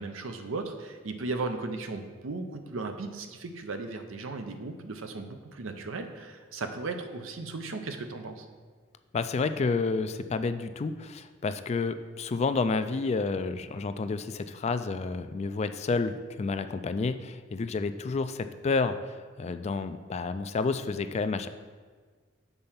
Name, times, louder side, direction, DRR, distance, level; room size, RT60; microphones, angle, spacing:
voice 1, 0.0-8.5, right 3 dB, 85° right, 6 dB, 0.7 m, -36 dB
voice 2, 9.1-19.0 19.4-21.5, left 4 dB, 35° left, 10 dB, 0.3 m, -30 dB
6.9 x 4.4 x 5.7 m, 1.5 s
head